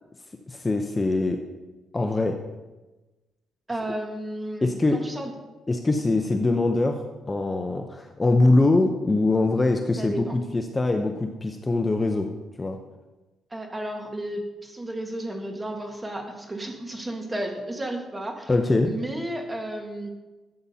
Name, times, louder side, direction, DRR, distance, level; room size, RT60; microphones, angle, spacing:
voice 1, 0.5-1.4 1.9-2.3 4.6-5.0 5.7-12.3 12.6-12.8 18.5-18.9, left 2 dB, 20° left, 4 dB, 0.7 m, -23 dB
voice 2, 3.7-5.3 10.0-10.4 13.5-18.5 18.8-20.1, right 1 dB, 15° right, 3 dB, 1.5 m, -33 dB
12.5 x 8.5 x 2.8 m, 1.1 s
cardioid pair, 90°, 0 cm